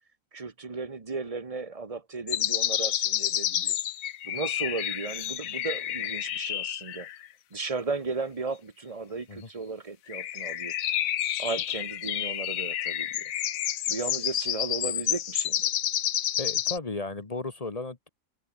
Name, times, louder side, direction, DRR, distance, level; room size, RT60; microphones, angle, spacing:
voice 1, 0.3-3.8 4.2-7.1 7.5-10.7 11.4-13.3 13.9-15.7, right 4 dB, 25° right, 1.2 m, -35 dB
sound 1, 2.3-7.3 10.1-16.8, left 11 dB, 80° left, 1.2 m, -29 dB
voice 2, 16.4-18.1, left 3 dB, 30° left, 1.2 m, -35 dB
omnidirectional pair, 1.4 m